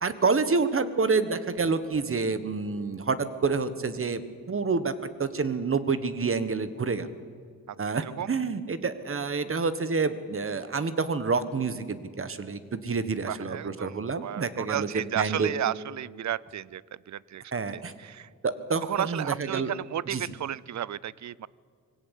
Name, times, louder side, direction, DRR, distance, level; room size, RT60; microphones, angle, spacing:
voice 1, 0.0-4.2 4.5-7.1 7.8-15.5 17.5-17.9 18.4-19.7 20.1-20.3, right 4 dB, 40° right, 12 dB, 1.4 m, -28 dB
voice 2, 13.3-16.8 17.1-17.4 17.7-18.3 18.9-21.5, right 11 dB, 60° right, 22 dB, 0.5 m, -33 dB
22.0 x 16.5 x 8.3 m, 2.2 s
cardioid pair, 90°, 32 cm